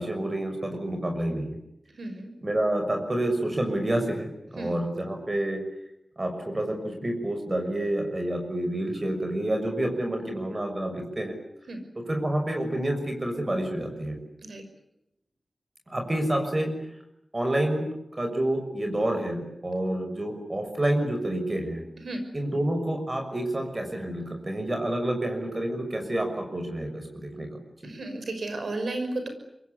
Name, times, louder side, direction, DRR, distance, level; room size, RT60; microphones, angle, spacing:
voice 1, 0.0-1.6 2.4-5.6 6.2-11.3 12.1-14.2 15.9-16.7 17.3-17.9 18.2-21.8 22.3-27.5, right 1 dB, 35° right, 4 dB, 6.3 m, -28 dB
voice 2, 2.0-2.3 4.6-4.8 11.7-11.8 14.4-14.6 22.0-22.2 27.8-29.3, right 2 dB, 90° right, 7 dB, 6.0 m, -33 dB
26.0 x 23.5 x 9.8 m, 0.81 s
wide cardioid pair, 75°, 0 cm